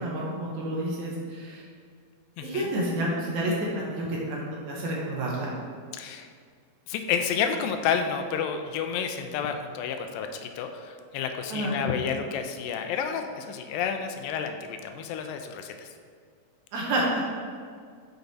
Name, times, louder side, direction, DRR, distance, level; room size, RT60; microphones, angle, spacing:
voice 1, 0.0-1.6 2.4-5.5 11.5-11.8 16.7-17.4, right 1 dB, 70° right, -4 dB, 2.0 m, -29 dB
voice 2, 2.4-2.7 5.9-6.3 6.9-15.9, left 7 dB, 85° left, 6 dB, 2.2 m, -30 dB
6.7 x 4.6 x 4.0 m, 2.1 s
omnidirectional pair, 3.9 m